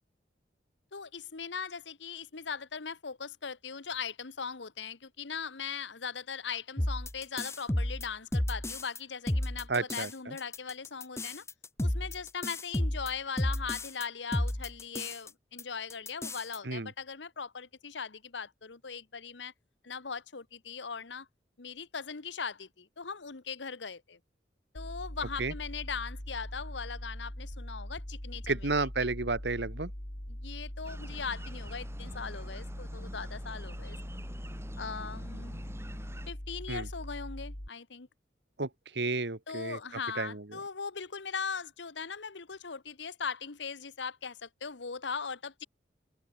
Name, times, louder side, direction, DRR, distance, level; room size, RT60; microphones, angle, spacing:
voice 1, 0.9-11.4 11.8-19.5 19.8-21.3 21.6-24.2 24.7-28.6 30.3-34.0 34.8-35.6 36.3-38.1 39.5-45.6, left 6 dB, 90° left, 1.2 m, -39 dB
sound 1, 6.8-9.0 9.3-10.1 10.4-14.0 14.3-15.3 15.6-15.7 15.9-16.6, left 1 dB, 15° left, 0.9 m, -32 dB
voice 2, 9.7-10.4 16.6-16.9 25.4-25.5 28.5-29.9 36.7-36.9 38.6-39.8 40.2-40.4, right 3 dB, 70° right, 1.6 m, -32 dB
sound 2, 24.8-37.7, equal, 50° left, 3.6 m, -41 dB
sound 3, 30.8-36.3, right 1 dB, 15° right, 4.5 m, -48 dB
head